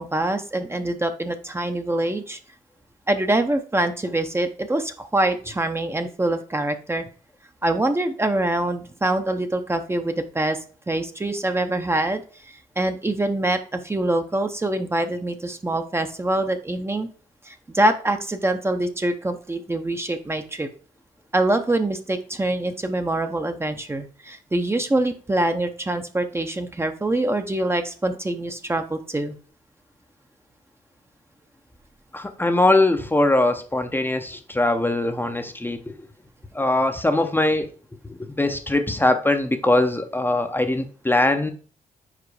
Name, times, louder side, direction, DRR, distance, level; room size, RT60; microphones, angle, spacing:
voice 1, 0.0-2.4 3.1-7.0 7.6-10.6 10.9-17.1 17.5-20.7 21.3-29.4, right 1 dB, 20° right, 7 dB, 0.7 m, -24 dB
voice 2, 32.1-35.8 36.5-37.7 38.1-41.5, left 2 dB, 15° left, 6 dB, 0.7 m, -21 dB
5.0 x 4.5 x 4.8 m, 0.41 s
cardioid pair, 80°, 14 cm